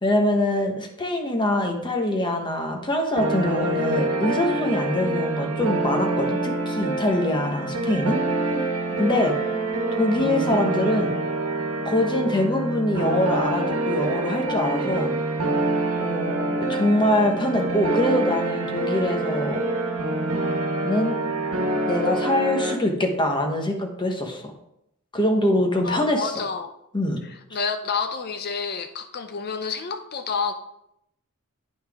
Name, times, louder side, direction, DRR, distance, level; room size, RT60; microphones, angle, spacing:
voice 1, 0.0-8.2 9.0-9.4 9.9-11.1 11.8-15.1 16.0-19.6 20.8-21.2 21.9-24.5 25.1-26.3 26.9-27.2, left 1 dB, 20° left, 3 dB, 1.0 m, -24 dB
sound 1, 3.2-22.8, right 2 dB, 90° right, 1.2 m, -26 dB
voice 2, 25.8-26.7 27.2-30.5, left 5 dB, 45° left, 8 dB, 0.6 m, -29 dB
9.4 x 5.6 x 3.5 m, 0.79 s
head